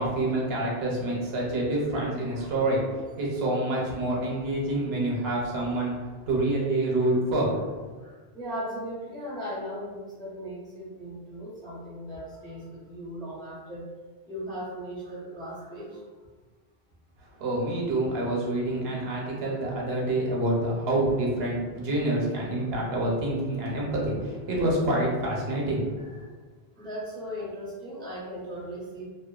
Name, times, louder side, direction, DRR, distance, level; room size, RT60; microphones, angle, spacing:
voice 1, 0.0-2.8 3.2-5.9 6.3-7.5 17.4-25.8, right 1 dB, 75° right, -3 dB, 0.9 m, -27 dB
voice 2, 2.3-2.7 7.1-7.2 8.0-13.9 14.3-16.1 26.2-26.3 26.8-29.1, equal, 5° left, -7 dB, 0.5 m, -38 dB
2.8 x 2.2 x 2.3 m, 1.4 s
omnidirectional pair, 1.1 m